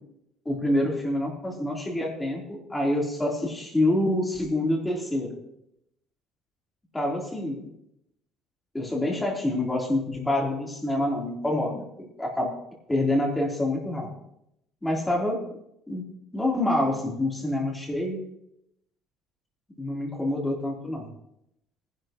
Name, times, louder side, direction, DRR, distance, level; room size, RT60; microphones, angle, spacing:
voice 1, 0.5-5.4 6.9-7.6 8.7-12.5 12.9-14.1 14.8-15.4 15.9-16.1 16.3-18.2 19.8-21.1, left 1 dB, 10° left, -2 dB, 3.8 m, -27 dB
19.5 x 11.0 x 3.1 m, 0.80 s
cardioid pair, 130°, 0 cm